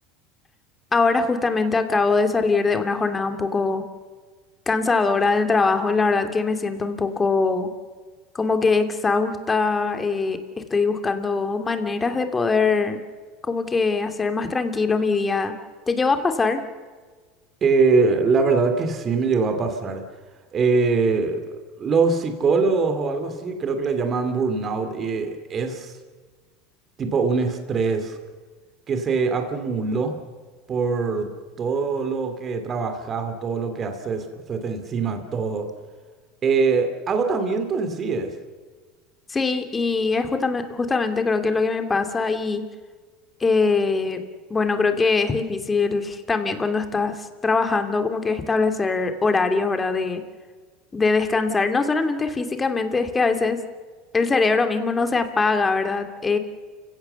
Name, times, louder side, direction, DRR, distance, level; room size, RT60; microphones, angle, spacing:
voice 1, 0.9-3.8 4.7-7.7 8.3-13.0 13.4-15.5 15.9-16.6 39.3-42.6 43.4-44.2 44.5-50.2 50.9-53.6 54.1-56.4, left 4 dB, 20° left, 7 dB, 2.5 m, -22 dB
voice 2, 17.6-20.0 20.5-21.4 21.8-25.9 27.0-28.2 28.9-30.1 30.7-31.3 31.6-35.7 36.4-38.3, right 4 dB, 35° right, 6 dB, 2.8 m, -23 dB
29.5 x 16.5 x 6.9 m, 1.5 s
supercardioid pair, 110°, 0 cm